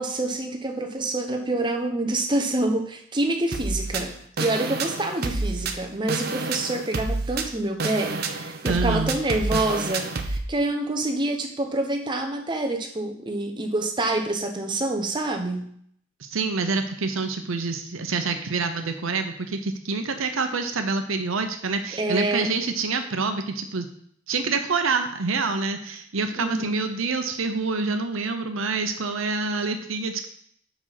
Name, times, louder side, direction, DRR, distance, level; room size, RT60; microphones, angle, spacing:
voice 1, 0.0-15.7 22.0-22.5 26.4-26.8, right 2 dB, 25° right, 3 dB, 0.9 m, -27 dB
sound 1, 3.5-10.4, right 3 dB, 50° right, 0.7 m, -29 dB
voice 2, 8.7-9.1 16.2-23.9 24.3-30.3, right 4 dB, 85° right, 7 dB, 0.8 m, -27 dB
5.3 x 5.1 x 5.8 m, 0.65 s
head